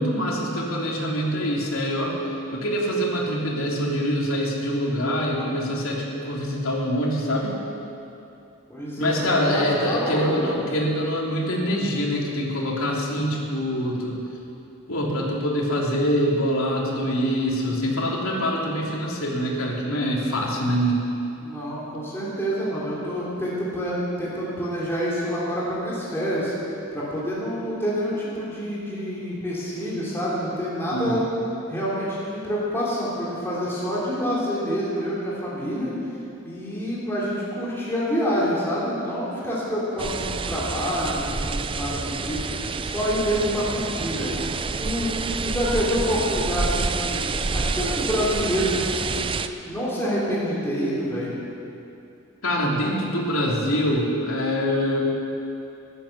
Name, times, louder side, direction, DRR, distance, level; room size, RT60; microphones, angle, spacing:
voice 1, 0.0-2.1 2.5-7.6 9.0-14.2 14.9-21.0 30.9-31.1 52.4-55.1, equal, 80° left, -3 dB, 3.1 m, -24 dB
voice 2, 8.7-10.5 21.4-26.5 26.9-31.2 31.7-35.9 36.4-44.3 44.8-49.2 49.7-51.4, equal, 10° left, -8 dB, 3.1 m, -27 dB
sound 1, 40.0-49.5, right 4 dB, 25° right, 0.5 m, -28 dB
15.5 x 12.0 x 6.6 m, 2.7 s
head